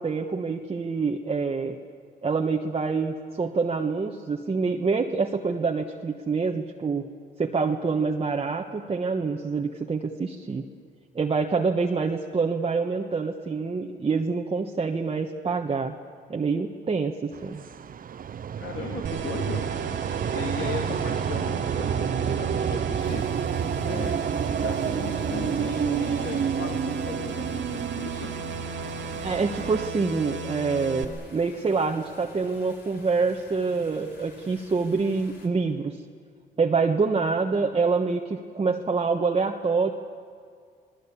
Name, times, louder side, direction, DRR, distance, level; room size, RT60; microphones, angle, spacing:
voice 1, 0.0-1.7 2.2-7.1 7.4-10.6 11.1-15.9 16.3-17.6 29.2-36.0 36.6-39.9, right 4 dB, 30° right, 1 dB, 1.3 m, -26 dB
sound 1, 17.3-29.9, right 8 dB, 45° right, 0.7 m, -29 dB
voice 2, 18.6-19.7 20.3-23.2 23.8-28.3, left 6 dB, 80° left, 2 dB, 2.4 m, -37 dB
sound 2, 19.0-31.0, right 4 dB, 70° right, 2.4 m, -35 dB
sound 3, 23.0-35.5, left 3 dB, 55° left, 4.7 m, -52 dB
26.5 x 19.5 x 8.5 m, 2.1 s
cardioid pair, 90°, 20 cm